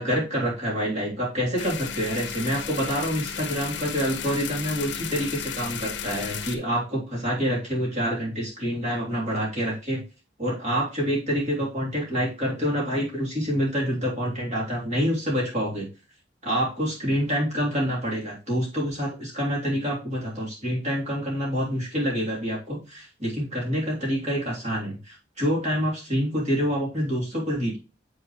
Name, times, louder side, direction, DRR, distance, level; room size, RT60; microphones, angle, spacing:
voice 1, 0.0-10.0 10.4-15.9 16.4-27.8, equal, 35° right, -4 dB, 3.3 m, -27 dB
sound 1, 1.6-6.6, left 7 dB, 70° left, 0.9 m, -34 dB
7.6 x 6.0 x 3.2 m, 0.31 s
head